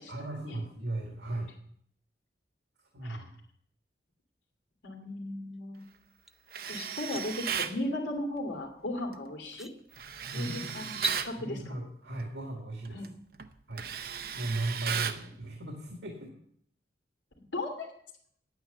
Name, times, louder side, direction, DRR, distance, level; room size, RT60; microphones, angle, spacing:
voice 1, 0.1-1.5 2.9-3.3 10.3-10.7 11.4-13.0 13.7-13.9 14.4-16.3, right 2 dB, 85° right, 0 dB, 2.0 m, -36 dB
voice 2, 4.8-5.8 6.7-9.7 10.3-11.0 11.2-11.6 12.9-13.1 15.1-15.3 17.5-17.9, left 1 dB, 85° left, 3 dB, 2.6 m, -36 dB
sound 1, 6.3-6.4 6.8-7.2 8.9-9.0 9.5-9.7 10.9-11.2, right 2 dB, ahead, 0.4 m, -36 dB
Tools, 6.5-7.8 10.0-11.3 12.8-13.1 13.4-15.3, right 7 dB, 55° right, 0.7 m, -35 dB
9.9 x 9.2 x 6.8 m, 0.67 s
head